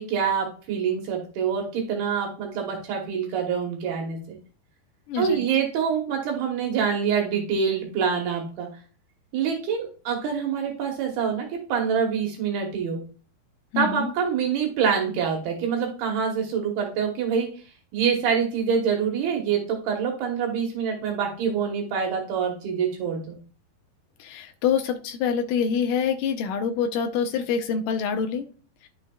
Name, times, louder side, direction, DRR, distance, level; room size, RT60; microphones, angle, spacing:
voice 1, 0.0-4.4 5.1-8.7 9.3-13.0 13.8-17.5 17.9-23.4, right 6 dB, 75° right, 2 dB, 3.1 m, -26 dB
voice 2, 5.1-5.4 13.7-14.1 24.2-28.5, left 6 dB, 85° left, 5 dB, 1.9 m, -26 dB
11.5 x 6.2 x 2.3 m, 0.39 s
omnidirectional pair, 4.6 m